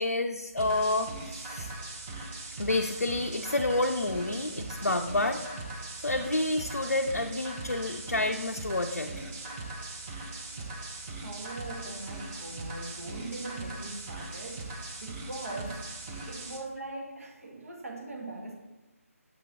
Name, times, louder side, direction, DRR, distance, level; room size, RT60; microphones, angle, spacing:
voice 1, 0.0-1.9 2.6-5.4 6.0-9.3, left 2 dB, 80° left, 3 dB, 0.4 m, -29 dB
sound 1, 0.6-16.6, right 2 dB, 15° right, 0.5 m, -40 dB
voice 2, 11.2-15.8 16.3-18.5, right 2 dB, 65° right, -1 dB, 1.3 m, -41 dB
7.2 x 2.9 x 4.9 m, 1.1 s
figure-of-eight pair, 155°, 8 cm